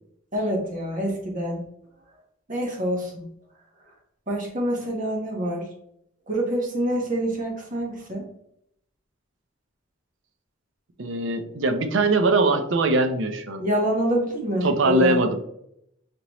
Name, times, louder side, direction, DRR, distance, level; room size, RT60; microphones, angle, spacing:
voice 1, 0.3-1.6 2.5-3.3 4.3-5.7 6.3-8.2 13.6-15.2, equal, 40° right, -1 dB, 1.2 m, -26 dB
voice 2, 11.0-13.6 14.6-15.4, right 2 dB, 65° right, 7 dB, 0.6 m, -21 dB
5.1 x 2.9 x 3.0 m, 0.74 s
head